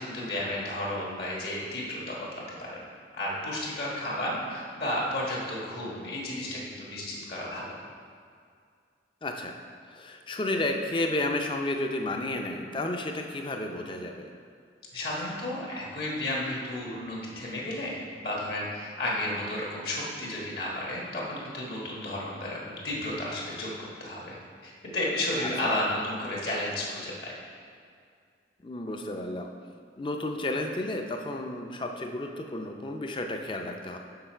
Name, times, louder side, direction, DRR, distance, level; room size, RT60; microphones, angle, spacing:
voice 1, 0.0-2.8 3.1-7.6 14.9-24.4 24.6-27.3, left 1 dB, 65° left, -4 dB, 1.4 m, -33 dB
voice 2, 9.2-9.5 9.9-14.3 25.4-25.8 28.6-29.5 30.0-34.0, left 2 dB, 25° left, 4 dB, 0.5 m, -32 dB
6.8 x 6.2 x 4.4 m, 2.2 s
head